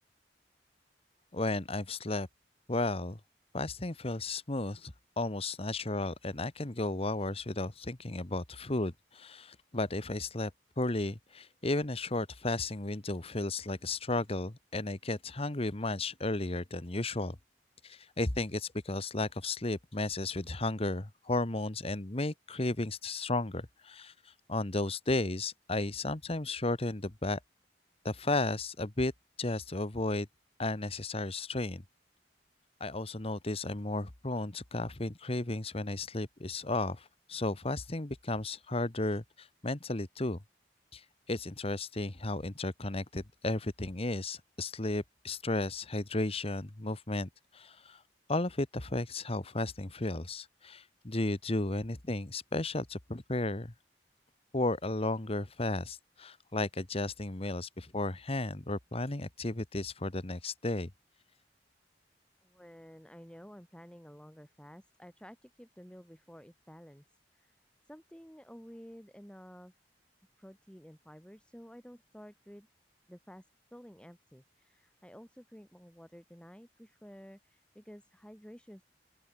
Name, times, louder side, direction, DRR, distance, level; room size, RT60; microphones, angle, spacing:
voice 1, 1.3-2.3 2.7-3.2 3.5-10.5 10.8-17.4 17.8-27.4 28.0-29.1 29.4-30.3 30.6-31.8 32.8-40.4 40.9-48.0 48.3-53.7 54.5-60.9, left 2 dB, 35° left, 1.4 m, -34 dB
voice 2, 62.4-67.0 67.3-67.6 67.9-69.7 70.4-72.7 73.1-73.4 73.7-78.8, equal, 5° left, 7.8 m, -52 dB
open air
head